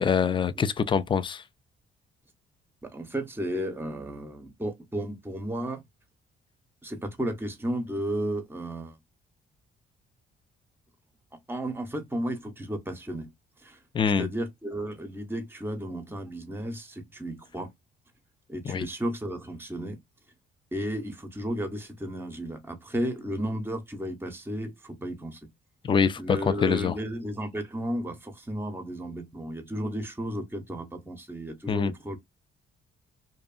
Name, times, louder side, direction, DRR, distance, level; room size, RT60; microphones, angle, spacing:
voice 1, 0.0-1.4 13.9-14.3 18.7-18.9 25.8-26.9 31.7-31.9, left 6 dB, 25° left, 0.3 m, -25 dB
voice 2, 2.8-5.8 6.8-9.0 11.5-13.3 13.6-13.8 14.2-17.7 18.5-20.0 20.7-25.4 26.2-32.2, right 1 dB, 10° right, 0.7 m, -33 dB
2.7 x 2.3 x 2.4 m
cardioid pair, 90°, 20 cm